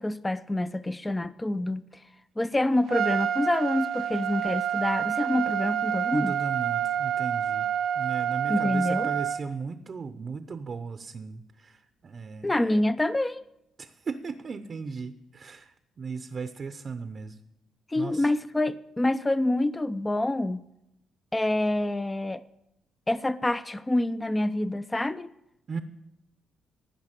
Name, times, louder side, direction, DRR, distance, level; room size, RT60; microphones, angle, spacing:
voice 1, 0.0-1.8 2.4-6.3 8.5-9.1 12.4-13.4 17.9-20.6 21.3-22.4 23.1-25.3, left 1 dB, 15° left, 0.5 m, -27 dB
Trumpet, 2.9-9.4, right 10 dB, 75° right, 0.6 m, -28 dB
voice 2, 6.1-7.7 8.0-12.5 13.8-17.4 18.0-18.3 25.7-25.8, right 5 dB, 45° right, 0.7 m, -36 dB
15.5 x 5.8 x 8.9 m
cardioid pair, 90°, 0 cm